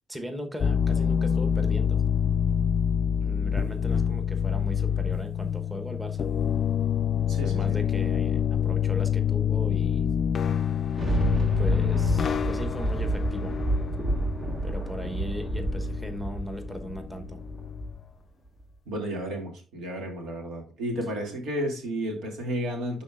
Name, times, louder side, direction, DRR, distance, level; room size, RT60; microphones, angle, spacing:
voice 1, 0.1-2.0 3.1-6.3 7.4-10.1 11.6-13.5 14.6-17.4, equal, 5° right, 5 dB, 1.1 m, -38 dB
sound 1, 0.6-18.0, left 8 dB, 50° left, 0.4 m, -27 dB
voice 2, 7.2-7.8 18.9-23.0, equal, 80° right, 2 dB, 2.5 m, -32 dB
Thunder, 10.6-18.1 18.6-18.7, right 2 dB, 35° right, 1.0 m, -30 dB
11.0 x 4.1 x 2.5 m, 0.35 s
cardioid pair, 90°, 0 cm